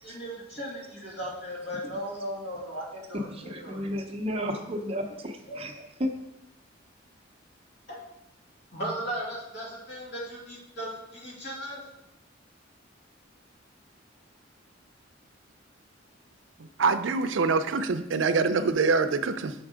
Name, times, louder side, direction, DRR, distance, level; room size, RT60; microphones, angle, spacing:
voice 1, 0.0-3.8 4.8-5.1 5.5-5.6 7.9-8.0 8.7-11.8, equal, 65° left, -5 dB, 2.5 m, -37 dB
voice 2, 3.1-6.1, equal, 30° right, 4 dB, 0.7 m, -33 dB
voice 3, 16.6-19.5, right 4 dB, 85° right, 10 dB, 0.5 m, -25 dB
6.4 x 4.5 x 4.9 m, 0.85 s
head